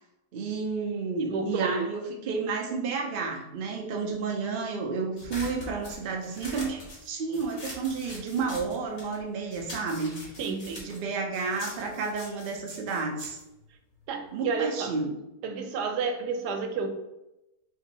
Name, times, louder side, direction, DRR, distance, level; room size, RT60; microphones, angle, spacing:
voice 1, 0.3-10.3 10.8-13.4 14.3-15.1, right 4 dB, 60° right, 2 dB, 0.6 m, -31 dB
voice 2, 1.3-1.9 3.8-4.2 10.4-10.9 14.1-14.9 15.4-16.9, right 5 dB, 85° right, 5 dB, 1.2 m, -31 dB
sound 1, 5.2-9.2 9.5-14.3, left 1 dB, 70° left, 1.8 m, -43 dB
3.7 x 2.6 x 3.9 m, 0.92 s
omnidirectional pair, 1.7 m